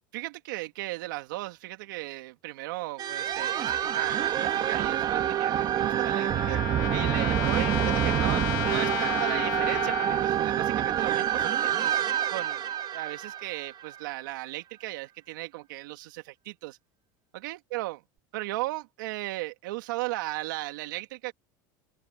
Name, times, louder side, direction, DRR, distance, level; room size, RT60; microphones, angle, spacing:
voice 1, 0.1-12.0 12.3-12.6 12.9-16.8 17.3-18.0 18.3-21.3, right 20 dB, 80° right, 2.6 m, -36 dB
sound 1, 3.0-14.2, right 11 dB, 40° right, 1.9 m, -27 dB
Trumpet, 5.1-10.3, left 19 dB, 80° left, 3.9 m, -34 dB
open air
supercardioid pair, 110°, 11 cm